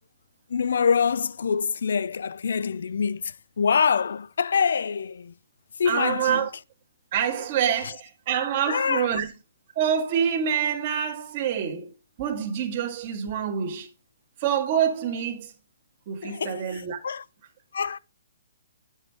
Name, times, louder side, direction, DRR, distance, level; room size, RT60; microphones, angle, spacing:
voice 1, 0.5-5.3 5.8-6.5 8.7-9.3 16.2-16.6 17.0-17.2 17.7-18.0, left 6 dB, 75° left, 0.4 m, -25 dB
voice 2, 5.8-6.5 7.1-9.3 9.7-13.9 14.4-15.5 16.1-17.0, right 8 dB, 40° right, 1.6 m, -26 dB
9.0 x 6.3 x 3.5 m
hypercardioid pair, 150°, 0 cm